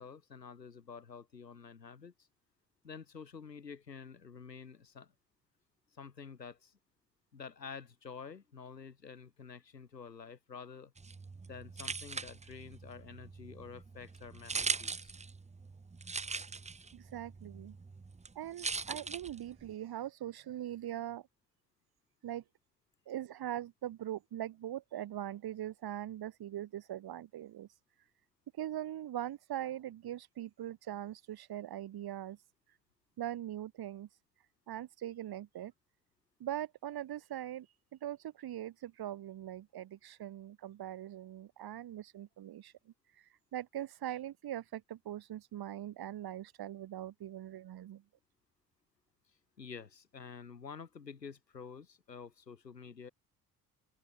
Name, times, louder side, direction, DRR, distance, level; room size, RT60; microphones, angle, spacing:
voice 1, 0.0-2.1 2.8-5.1 5.9-6.8 7.3-10.9 11.5-15.1 49.6-53.1, left 6 dB, 90° left, 7.4 m, -49 dB
sound 1, 11.0-19.7, right 4 dB, 15° right, 1.1 m, -41 dB
voice 2, 16.9-17.8 18.3-21.3 22.2-22.4 23.1-27.8 28.5-32.4 33.2-34.2 34.7-35.7 36.4-48.0, right 12 dB, 50° right, 4.8 m, -41 dB
open air
figure-of-eight pair, 55°, 48 cm